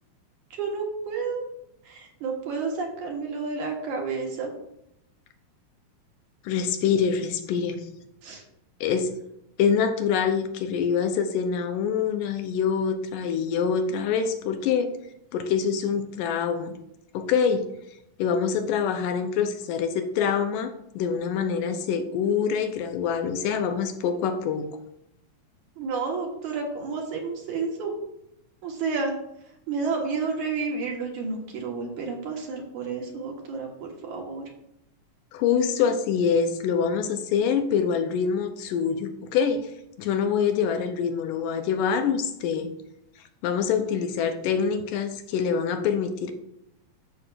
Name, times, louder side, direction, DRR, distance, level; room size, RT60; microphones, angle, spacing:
voice 1, 0.5-1.4 1.8-4.5 8.2-8.4 25.8-28.0 28.6-29.1 29.7-34.4, right 4 dB, 60° right, 0 dB, 2.6 m, -30 dB
voice 2, 6.4-7.9 8.8-9.2 9.6-15.0 15.3-16.7 17.1-17.7 18.2-24.7 35.3-39.7 40.0-42.7 43.4-46.3, left 6 dB, 80° left, 7 dB, 2.2 m, -25 dB
14.0 x 6.2 x 2.5 m, 0.79 s
omnidirectional pair, 4.2 m